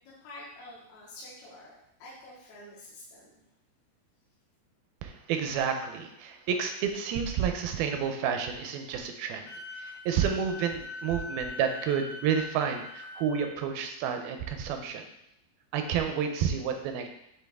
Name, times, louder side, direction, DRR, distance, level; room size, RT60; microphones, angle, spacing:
voice 1, 0.0-3.3, left 1 dB, 75° left, -7 dB, 3.3 m, -48 dB
voice 2, 5.0-9.5 9.7-15.0 15.7-17.1, right 7 dB, 80° right, 5 dB, 2.4 m, -30 dB
Wind instrument woodwind instrument, 9.5-13.5, left 3 dB, 60° left, 1.5 m, -42 dB
9.9 x 3.6 x 3.5 m, 0.80 s
omnidirectional pair, 4.5 m